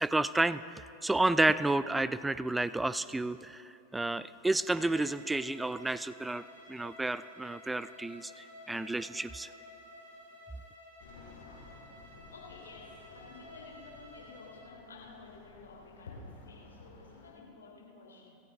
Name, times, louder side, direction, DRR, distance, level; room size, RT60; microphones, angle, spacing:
voice 1, 0.0-3.6 3.9-6.4 6.7-8.3 8.7-9.5, right 2 dB, 5° right, 15 dB, 0.3 m, -30 dB
Bowed string instrument, 4.6-14.7, left 1 dB, 90° left, 3.6 m, -53 dB
voice 2, 11.0-12.0 12.3-18.4, left 4 dB, 70° left, -3 dB, 3.0 m, -52 dB
sound 1, 11.0-17.3, left 4 dB, 55° left, 2.4 m, -56 dB
18.0 x 13.0 x 3.5 m, 2.8 s
figure-of-eight pair, 90°, 0 cm